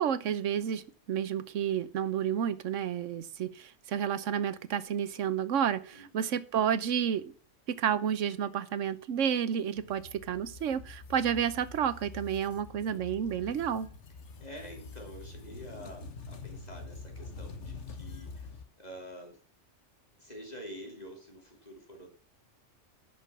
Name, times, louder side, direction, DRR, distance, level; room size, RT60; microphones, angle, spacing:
voice 1, 0.0-7.3 7.7-13.9, right 8 dB, 85° right, 1.2 m, -31 dB
voice 2, 5.9-6.3 14.4-19.4 20.2-22.1, equal, 35° left, 3.0 m, -47 dB
sound 1, 9.7-18.6, left 3 dB, 70° left, 1.5 m, -46 dB
11.0 x 6.2 x 6.1 m
omnidirectional pair, 1.2 m